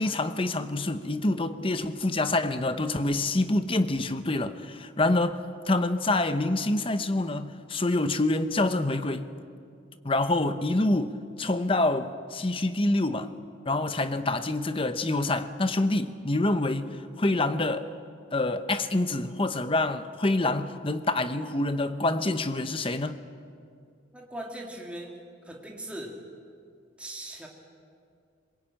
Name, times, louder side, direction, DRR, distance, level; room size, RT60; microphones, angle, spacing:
voice 1, 0.0-9.3 10.0-13.3 13.6-17.9 18.3-23.2, left 2 dB, 25° left, 0.8 m, -26 dB
voice 2, 24.1-25.2 25.4-26.2 27.0-27.5, right 1 dB, 5° right, 2.4 m, -39 dB
22.0 x 21.0 x 8.9 m
head